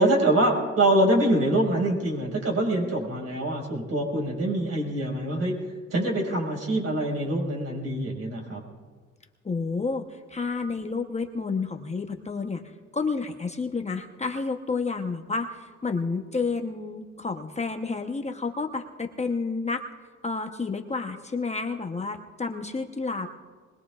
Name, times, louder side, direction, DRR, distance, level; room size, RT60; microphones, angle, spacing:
voice 1, 0.0-5.5 5.9-8.6, right 1 dB, 55° right, 0 dB, 5.3 m, -24 dB
voice 2, 9.4-12.6 12.9-19.9 20.2-23.3, left 4 dB, 20° left, 4 dB, 0.9 m, -30 dB
22.5 x 20.0 x 2.4 m, 1.5 s
cardioid pair, 90°, 30 cm